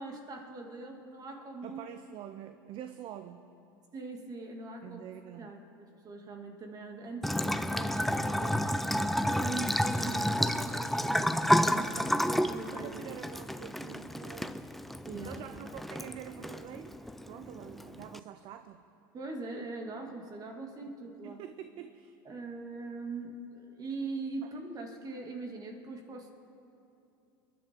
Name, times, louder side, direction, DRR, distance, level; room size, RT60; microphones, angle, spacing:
voice 1, 0.0-1.8 3.9-5.0 5.4-8.9 9.3-13.0 15.0-15.4 19.1-21.4 22.3-26.3, right 3 dB, 35° right, 2 dB, 2.3 m, -41 dB
voice 2, 1.6-3.5 4.8-5.5 12.8-14.6 15.1-16.9 17.2-18.9 21.2-22.1 24.4-24.5, right 10 dB, 50° right, 10 dB, 0.6 m, -46 dB
Bathtub (filling or washing) / Trickle dribble, 7.2-18.2, equal, ahead, 0.5 m, -31 dB
28.0 x 11.0 x 3.7 m, 2.7 s
hypercardioid pair, 85°, 11 cm